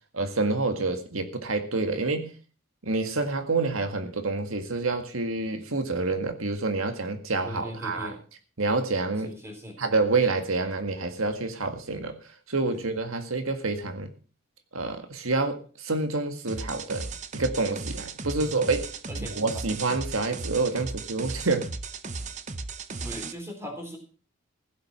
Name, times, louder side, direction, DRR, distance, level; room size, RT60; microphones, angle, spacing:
voice 1, 0.1-2.3 2.8-8.2 8.6-9.3 9.8-12.2 12.5-14.1 14.7-17.1 17.3-21.7, right 3 dB, 80° right, 1.9 m, -28 dB
voice 2, 7.4-8.2 9.2-9.8 12.7-12.8 18.4-18.5 19.1-19.4 23.0-24.0, equal, 15° right, 3.7 m, -39 dB
sound 1, 16.5-23.3, right 3 dB, 35° right, 0.8 m, -36 dB
15.5 x 7.9 x 6.1 m
head